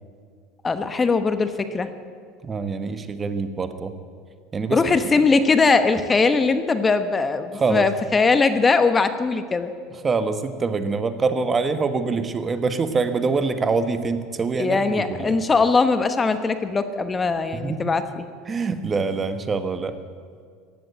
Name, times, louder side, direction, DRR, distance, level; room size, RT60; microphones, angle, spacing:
voice 1, 0.6-1.9 4.7-9.7 14.5-18.3, left 4 dB, 25° left, 10 dB, 1.0 m, -20 dB
voice 2, 2.4-3.9 4.5-5.0 7.5-7.9 10.0-15.4 17.5-17.9 18.5-20.0, right 4 dB, 25° right, 10 dB, 1.2 m, -25 dB
15.5 x 10.5 x 8.0 m, 2.1 s
hypercardioid pair, 90°, 0 cm